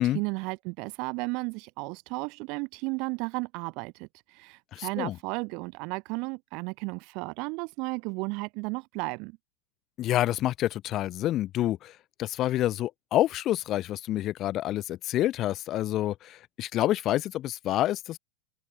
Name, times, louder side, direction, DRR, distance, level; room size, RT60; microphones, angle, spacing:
voice 1, 0.0-9.4, right 29 dB, 45° right, 1.6 m, -34 dB
voice 2, 4.7-5.1 10.0-11.9 12.2-18.2, left 14 dB, 35° left, 0.8 m, -28 dB
open air
figure-of-eight pair, 90°, 0 cm